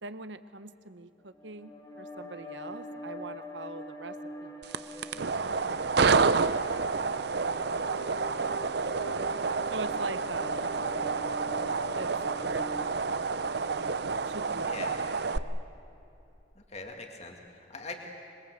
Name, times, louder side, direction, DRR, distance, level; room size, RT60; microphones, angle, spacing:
voice 1, 0.0-4.1 4.4-4.5 4.9-6.3 6.7-7.2 7.7-7.9 8.7-9.1 9.7-10.6 12.0-12.1 12.4-15.1 15.3-15.6, right 3 dB, 80° right, 11 dB, 1.0 m, -44 dB
sound 1, 1.3-14.7, left 1 dB, 20° left, 2.9 m, -44 dB
sound 2, 4.6-15.4, right 4 dB, 60° right, 0.7 m, -29 dB
voice 2, 5.1-5.6 14.5-15.0 16.6-18.0, left 3 dB, 35° left, 2 dB, 2.3 m, -43 dB
26.0 x 22.5 x 8.1 m, 2.9 s
head